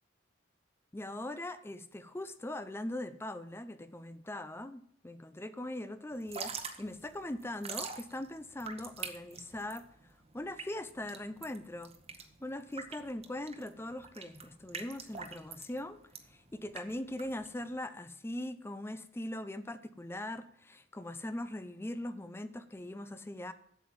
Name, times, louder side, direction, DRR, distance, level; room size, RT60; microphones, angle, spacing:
voice 1, 0.9-9.9 10.3-11.9 12.4-16.0 16.3-23.5, left 1 dB, 10° left, 13 dB, 0.5 m, -41 dB
Drip / Trickle dribble, 6.1-17.7, right 5 dB, 30° right, 1.1 m, -45 dB
8.3 x 7.6 x 7.7 m, 0.71 s
head